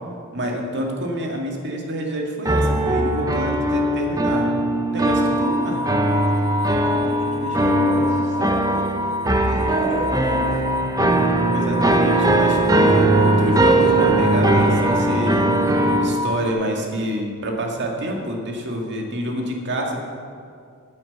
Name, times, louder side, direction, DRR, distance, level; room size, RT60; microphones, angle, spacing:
voice 1, 0.3-4.5 4.9-5.9 11.5-15.6 16.0-20.0, right 1 dB, 55° right, 1 dB, 2.0 m, -27 dB
sound 1, 2.4-16.2, right 1 dB, 15° right, 0.9 m, -20 dB
sound 2, 5.4-16.5, left 2 dB, 70° left, 0.7 m, -28 dB
voice 2, 6.6-9.1 9.4-10.6, equal, 35° right, -3 dB, 2.6 m, -31 dB
9.8 x 9.0 x 7.3 m, 2.2 s
head